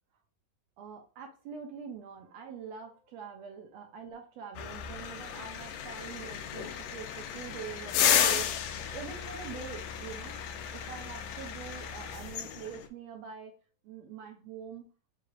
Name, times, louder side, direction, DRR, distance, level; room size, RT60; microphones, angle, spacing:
voice 1, 0.8-8.5 8.8-10.4 10.7-13.5 13.8-14.8, right 7 dB, 75° right, 3 dB, 1.6 m, -44 dB
sound 1, 4.6-12.9, left 9 dB, 85° left, 2.2 m, -33 dB
6.5 x 2.9 x 2.4 m, 0.37 s
omnidirectional pair, 3.8 m